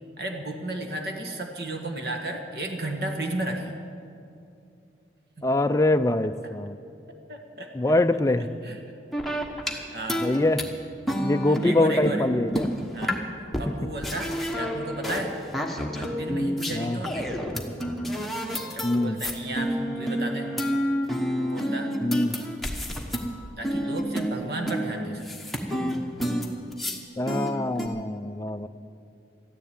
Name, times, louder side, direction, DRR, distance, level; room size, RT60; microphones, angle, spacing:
voice 1, 0.2-3.7 7.3-7.7 8.4-8.8 9.6-10.3 11.5-12.3 12.9-13.2 13.6-15.3 15.9-17.3 18.7-20.5 21.4-22.0 23.6-25.3, right 1 dB, 60° right, 3 dB, 1.7 m, -34 dB
voice 2, 5.4-6.7 7.8-8.5 10.2-10.6 11.2-12.7 16.7-17.0 18.8-19.2 22.0-22.4 27.2-28.7, left 2 dB, 15° left, 9 dB, 0.4 m, -24 dB
sound 1, 9.1-9.7 10.1-10.6 11.1-13.3 13.5-13.6 14.0-15.3 15.5-16.8 17.0-23.3 23.6-27.0 27.3-27.9, equal, ahead, 1.1 m, -29 dB
13.5 x 10.5 x 8.9 m, 2.6 s
head